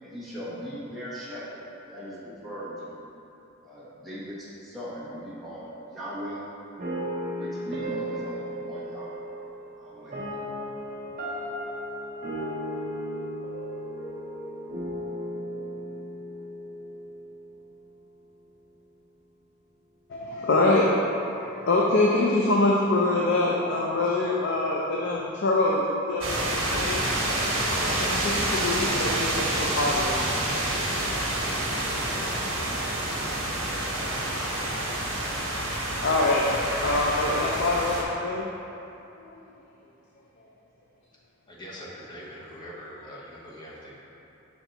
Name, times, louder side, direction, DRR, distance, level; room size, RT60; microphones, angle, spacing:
voice 1, 0.0-3.0 3.6-6.4 7.4-9.1 9.8-10.4, equal, ahead, -10 dB, 1.3 m, -39 dB
sound 1, 6.8-17.9, equal, 40° right, 0.9 m, -35 dB
voice 2, 20.1-26.4 26.7-27.0 27.8-30.2 35.6-36.5 36.8-38.5 39.2-39.4, left 2 dB, 55° left, -3 dB, 0.5 m, -25 dB
sound 2, 26.2-38.0, right 1 dB, 70° right, 1.3 m, -28 dB
voice 3, 41.5-43.9, equal, 20° left, -6 dB, 1.0 m, -42 dB
5.8 x 4.3 x 4.0 m, 2.9 s
head